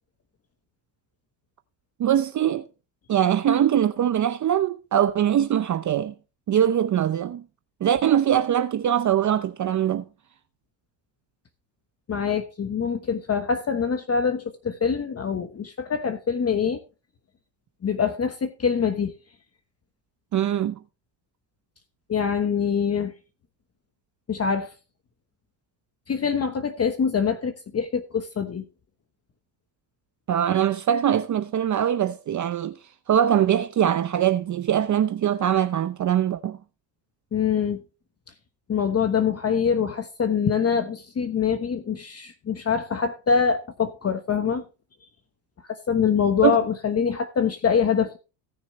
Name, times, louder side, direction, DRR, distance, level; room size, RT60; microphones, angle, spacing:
voice 1, 2.0-2.7 3.1-6.1 6.5-7.4 7.8-10.1 20.3-20.8 30.3-32.8 33.1-36.6 46.4-46.6, right 10 dB, 40° right, 0.7 m, -22 dB
voice 2, 12.1-16.8 17.8-19.1 22.1-23.1 24.3-24.7 26.1-28.6 37.3-37.8 38.7-44.6 45.7-48.2, left 6 dB, 30° left, 1.2 m, -24 dB
17.5 x 6.3 x 3.1 m
cardioid pair, 100°, 48 cm